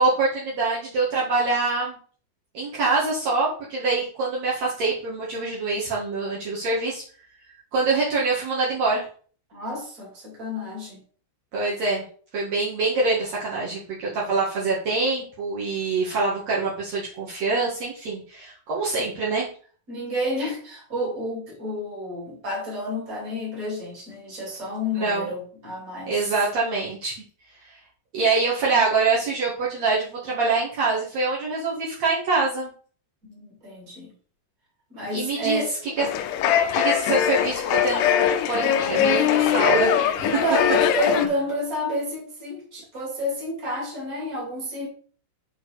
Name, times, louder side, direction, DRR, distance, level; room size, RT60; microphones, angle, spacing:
voice 1, 0.0-2.0 2.5-7.0 7.7-9.0 11.5-12.0 12.3-19.5 24.9-25.3 26.1-27.2 28.1-32.7 35.1-35.6 36.0-36.1 36.7-39.9, right 3 dB, 70° right, -6 dB, 1.6 m, -25 dB
voice 2, 9.5-11.0 19.9-26.2 33.3-34.1 34.9-35.7 40.2-44.9, left 1 dB, 20° right, -3 dB, 2.4 m, -30 dB
sound 1, 36.0-41.3, left 9 dB, 80° left, 3.0 m, -21 dB
8.0 x 4.5 x 4.8 m, 0.43 s
omnidirectional pair, 6.0 m